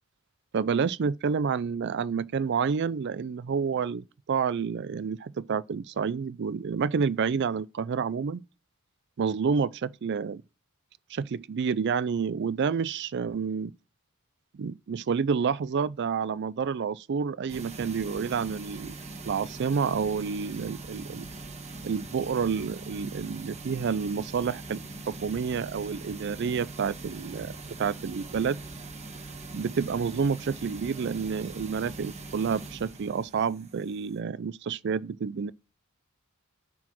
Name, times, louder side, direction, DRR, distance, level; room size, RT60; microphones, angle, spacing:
voice 1, 0.5-8.4 9.2-10.4 11.1-13.7 14.5-18.9 19.2-21.3 21.8-28.6 29.5-35.5, right 6 dB, 50° right, 0.4 m, -29 dB
sound 1, 17.5-34.2, right 3 dB, 30° right, 1.5 m, -42 dB
9.3 x 4.9 x 6.0 m
head